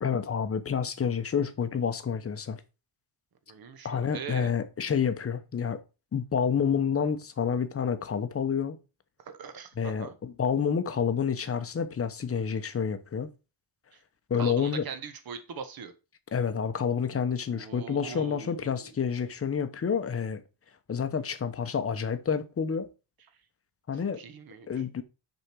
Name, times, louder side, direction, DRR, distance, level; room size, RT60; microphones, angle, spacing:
voice 1, 0.0-2.6 3.8-5.8 6.1-8.8 9.8-13.3 14.3-14.8 16.3-20.4 20.9-22.9 23.9-24.2 24.7-25.0, left 7 dB, 30° left, 0.9 m, -29 dB
voice 2, 3.5-4.5 9.2-10.1 13.9-14.0 14.4-15.9 17.5-18.9 23.9-24.7, right 6 dB, 45° right, 1.2 m, -41 dB
6.6 x 4.5 x 6.1 m
cardioid pair, 150°, 48 cm